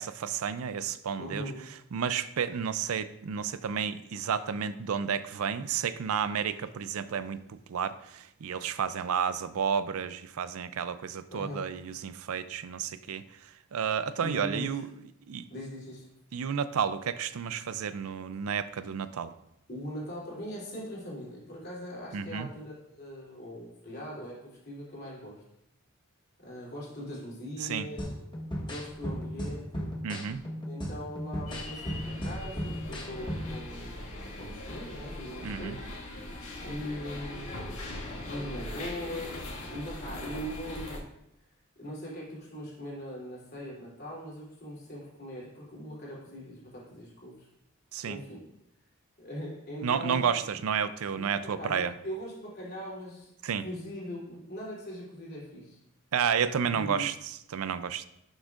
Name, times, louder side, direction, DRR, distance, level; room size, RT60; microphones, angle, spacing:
voice 1, 0.0-1.5 1.9-13.2 13.7-14.9 15.3-15.5 16.3-19.3 22.1-22.5 27.6-27.9 30.0-30.4 35.4-35.8 47.9-48.2 49.8-51.9 53.4-53.6 56.1-57.1 57.5-58.1, right 7 dB, 80° right, 13 dB, 0.4 m, -31 dB
voice 2, 1.2-1.6 11.3-11.7 14.2-14.8 15.5-16.0 19.7-25.4 26.4-28.2 28.6-30.0 30.6-34.1 34.4-35.7 36.6-37.5 38.2-41.1 41.8-47.5 48.0-48.4 49.2-50.4 51.1-53.3 53.6-55.8 56.7-57.1, equal, 45° left, -5 dB, 3.1 m, -40 dB
sound 1, 28.0-33.6, equal, 20° left, 1.1 m, -36 dB
sound 2, 31.5-41.0, left 1 dB, 80° left, 1.8 m, -40 dB
11.5 x 6.2 x 2.5 m, 0.79 s
head